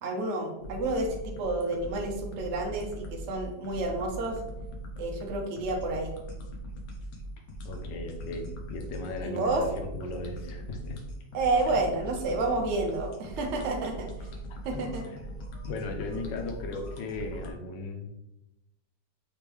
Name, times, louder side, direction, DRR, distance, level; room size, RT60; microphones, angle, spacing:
voice 1, 0.0-4.4 5.0-6.1 9.2-9.6 11.3-14.1 14.6-15.1, right 2 dB, 55° right, 1 dB, 0.9 m, -30 dB
sound 1, 0.6-17.5, right 1 dB, 65° left, 1.2 m, -41 dB
voice 2, 7.6-11.0 11.7-11.8 14.5-15.3 15.6-18.1, left 3 dB, 85° left, 4 dB, 1.3 m, -37 dB
4.4 x 3.4 x 3.1 m, 0.91 s
omnidirectional pair, 1.8 m